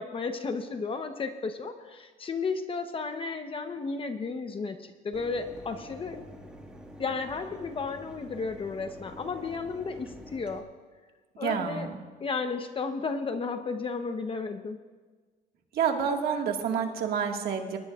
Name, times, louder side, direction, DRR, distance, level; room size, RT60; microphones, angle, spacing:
voice 1, 0.0-6.2 7.0-10.6 11.4-11.9 12.2-14.8, left 4 dB, 30° left, 7 dB, 0.9 m, -33 dB
Mechanisms, 5.1-10.6, equal, 5° right, 1.9 m, -47 dB
voice 2, 11.4-12.0 15.7-17.8, right 7 dB, 65° right, 3 dB, 1.9 m, -28 dB
22.0 x 19.5 x 2.5 m, 1.4 s
cardioid pair, 110°, 17 cm